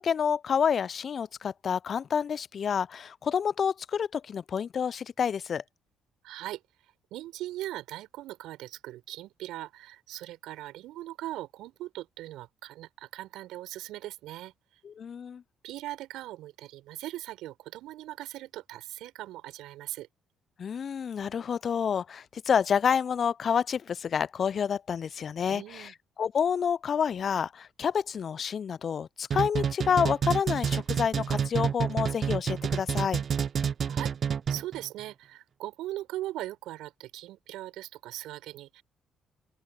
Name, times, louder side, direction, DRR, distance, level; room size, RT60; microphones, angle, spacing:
voice 1, 0.0-5.6 14.8-15.4 20.6-25.9 26.2-33.2, left 7 dB, 50° left, 0.5 m, -28 dB
voice 2, 6.2-14.5 15.6-20.1 25.5-25.9 33.8-34.1 34.5-38.8, right 15 dB, 70° right, 6.0 m, -40 dB
sound 1, 29.3-34.8, right 7 dB, 50° right, 0.4 m, -28 dB
open air
hypercardioid pair, 45°, 0 cm